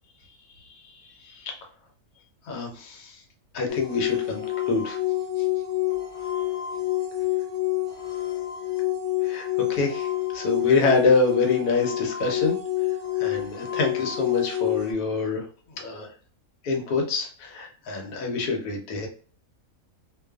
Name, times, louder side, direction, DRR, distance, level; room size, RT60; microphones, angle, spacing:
voice 1, 2.5-3.2 3.5-5.0 9.2-12.6 13.2-15.4 15.7-16.1 16.6-19.1, left 3 dB, 90° left, 1 dB, 1.2 m, -26 dB
sound 1, 3.7-14.9, left 15 dB, 50° left, 0.9 m, -28 dB
2.5 x 2.3 x 2.2 m, 0.42 s
omnidirectional pair, 1.6 m